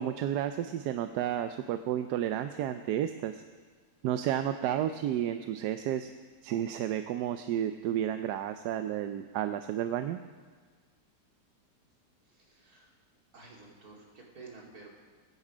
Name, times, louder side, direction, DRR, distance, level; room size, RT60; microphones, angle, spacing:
voice 1, 0.0-3.4 4.0-6.1 6.4-10.2, right 10 dB, 75° right, 9 dB, 1.1 m, -31 dB
voice 2, 12.2-12.9 13.3-14.9, right 3 dB, 60° right, -2 dB, 3.3 m, -51 dB
22.0 x 9.6 x 5.0 m, 1.5 s
omnidirectional pair, 1.9 m